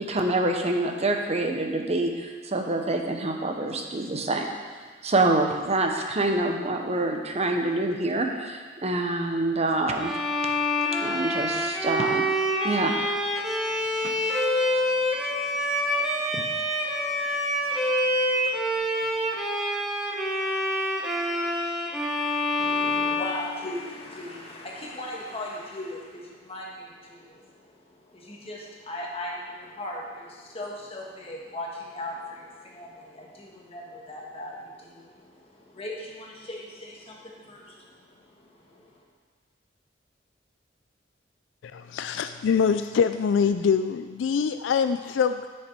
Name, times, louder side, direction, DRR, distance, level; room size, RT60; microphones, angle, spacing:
voice 1, 0.0-4.5 5.0-10.2 11.0-12.3 12.6-13.0 14.0-14.1 16.3-16.4, right 2 dB, 35° right, 3 dB, 0.9 m, -26 dB
Bowed string instrument, 10.0-24.1, left 1 dB, ahead, 1.2 m, -27 dB
voice 2, 22.6-39.0, left 1 dB, 30° left, -2 dB, 1.5 m, -39 dB
voice 3, 41.6-45.5, left 6 dB, 80° left, 9 dB, 0.3 m, -24 dB
10.0 x 6.6 x 4.5 m, 1.5 s
head